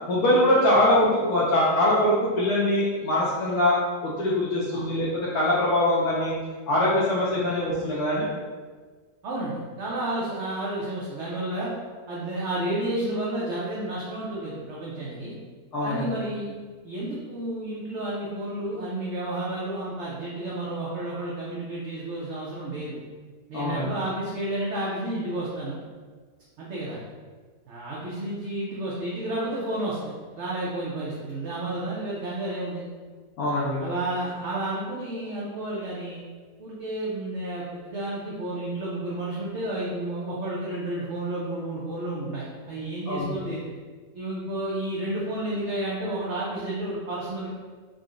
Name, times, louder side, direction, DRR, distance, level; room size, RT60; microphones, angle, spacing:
voice 1, 0.1-3.8 4.0-6.4 6.7-8.3 15.7-16.1 23.5-23.9 33.4-33.8 43.1-43.4, left 1 dB, 85° left, -7 dB, 1.2 m, -23 dB
voice 2, 9.2-11.7 12.1-15.3 15.8-16.5 16.8-23.0 23.5-25.8 26.6-27.0 27.7-32.9 33.8-36.2 36.6-43.7 44.1-47.5, right 1 dB, 60° right, -6 dB, 0.8 m, -31 dB
3.8 x 2.1 x 3.6 m, 1.5 s
omnidirectional pair, 1.6 m